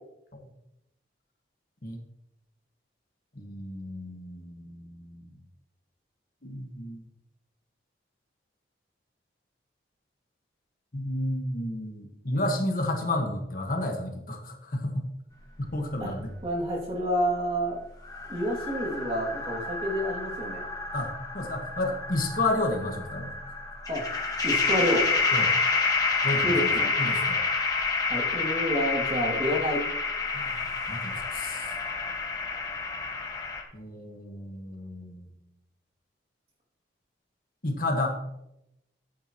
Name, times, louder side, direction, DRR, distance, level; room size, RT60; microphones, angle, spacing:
voice 1, 3.3-5.3 6.4-7.0 10.9-15.1 15.6-16.3 20.9-23.3 25.3-25.5 26.2-26.7 27.0-27.4 30.3-31.7 33.7-35.4 37.6-38.2, left 1 dB, 50° left, 3 dB, 1.4 m, -31 dB
voice 2, 16.4-17.8 18.3-20.6 23.9-24.0 24.4-25.1 26.4-26.9 28.1-29.8, equal, 30° right, -3 dB, 2.4 m, -28 dB
sound 1, 18.0-33.6, left 4 dB, 20° left, 1.4 m, -29 dB
14.0 x 8.9 x 3.0 m, 0.86 s
head